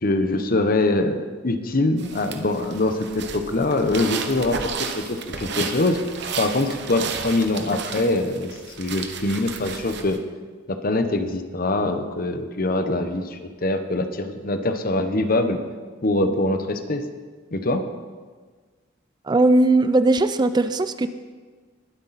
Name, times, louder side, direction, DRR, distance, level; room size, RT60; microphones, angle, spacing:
voice 1, 0.0-6.0 6.4-10.2 10.7-15.6 16.0-17.0 17.5-17.8, left 2 dB, 50° left, 8 dB, 1.0 m, -23 dB
sound 1, 2.0-10.2, right 5 dB, 65° right, 1.0 m, -33 dB
voice 2, 19.3-21.1, right 2 dB, 25° right, 11 dB, 0.4 m, -18 dB
21.0 x 8.2 x 4.2 m, 1.5 s
head